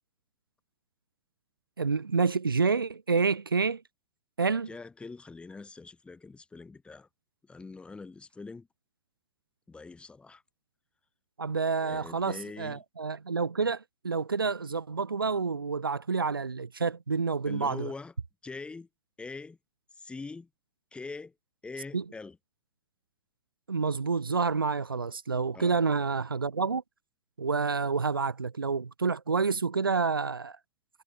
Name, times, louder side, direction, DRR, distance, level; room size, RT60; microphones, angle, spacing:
voice 1, 1.8-3.8 4.4-4.7 11.4-17.9 21.9-22.0 23.7-26.8 27.4-30.6, right 4 dB, 75° right, 1.2 m, -28 dB
voice 2, 4.7-7.1 7.4-8.7 9.7-10.4 11.8-12.8 17.5-18.1 18.4-18.9 19.2-19.6 20.0-20.5 20.9-21.3 21.6-22.4 25.5-25.8, left 4 dB, 10° left, 7.1 m, -43 dB
figure-of-eight pair, 105°, 12 cm